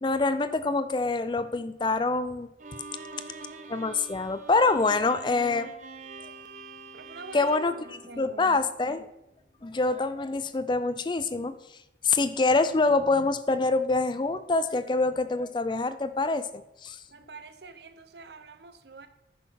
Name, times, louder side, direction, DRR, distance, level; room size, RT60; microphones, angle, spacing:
voice 1, 0.0-2.5 3.7-5.7 7.3-7.7 8.2-9.1 9.6-11.5 12.0-17.0, left 3 dB, 25° left, 12 dB, 0.4 m, -25 dB
Bowed string instrument, 2.6-8.9, right 3 dB, 45° right, 0.7 m, -45 dB
voice 2, 6.9-7.5 7.8-8.7 17.1-19.1, right 4 dB, 70° right, 10 dB, 0.9 m, -46 dB
10.0 x 6.2 x 5.8 m, 0.89 s
head